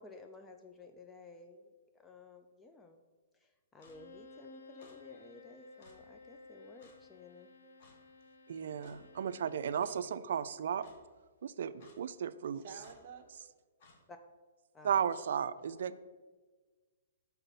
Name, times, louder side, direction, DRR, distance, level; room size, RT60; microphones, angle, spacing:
voice 1, 0.0-3.0 3.3-7.5 14.1-14.2 14.7-15.0, left 3 dB, 15° left, 6 dB, 0.4 m, -54 dB
Bowed string instrument, 3.8-9.7, left 3 dB, 80° left, 0.8 m, -56 dB
Clock, 3.8-4.0 4.8-5.0 5.8-6.0 6.8-7.0 7.8-8.0 8.8-9.0 9.8-10.0 10.8-11.0 11.8-12.0 12.8-13.0 13.8-14.0, left 3 dB, 50° left, 1.4 m, -61 dB
voice 2, 8.5-10.8 11.4-12.6 14.8-16.0, right 8 dB, 70° right, 14 dB, 0.3 m, -34 dB
voice 3, 12.6-13.3, right 6 dB, 45° right, 5 dB, 0.8 m, -50 dB
5.8 x 4.0 x 5.3 m, 1.4 s
hypercardioid pair, 150°, 0 cm